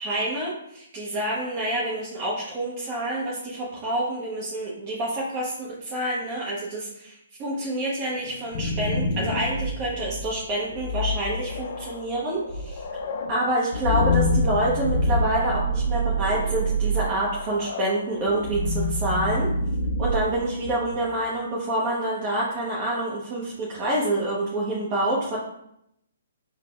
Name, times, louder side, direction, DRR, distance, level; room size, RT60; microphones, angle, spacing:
voice 1, 0.0-12.8 13.3-19.5 20.0-25.4, right 1 dB, 30° right, -5 dB, 0.7 m, -27 dB
sound 1, 8.3-21.1, equal, 55° left, 0.4 m, -27 dB
4.9 x 2.0 x 2.3 m, 0.78 s
hypercardioid pair, 140°, 0 cm